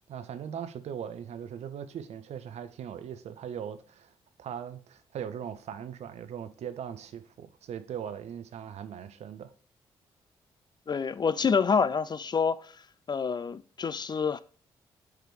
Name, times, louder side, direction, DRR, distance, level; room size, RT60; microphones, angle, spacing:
voice 1, 0.1-4.1 4.4-9.5, right 8 dB, 65° right, 0.6 m, -39 dB
voice 2, 10.9-12.7 13.1-14.4, left 6 dB, 35° left, 0.4 m, -27 dB
5.0 x 4.7 x 4.6 m
hypercardioid pair, 40°, 12 cm